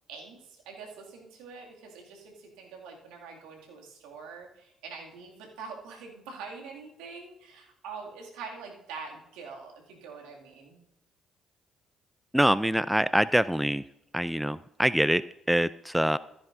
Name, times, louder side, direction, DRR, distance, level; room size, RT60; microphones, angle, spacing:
voice 1, 0.1-10.8, right 5 dB, 75° right, 0 dB, 2.3 m, -44 dB
voice 2, 12.3-13.8 14.1-16.2, equal, 5° right, 17 dB, 0.4 m, -25 dB
14.0 x 9.9 x 2.6 m, 0.84 s
hypercardioid pair, 50°, 0 cm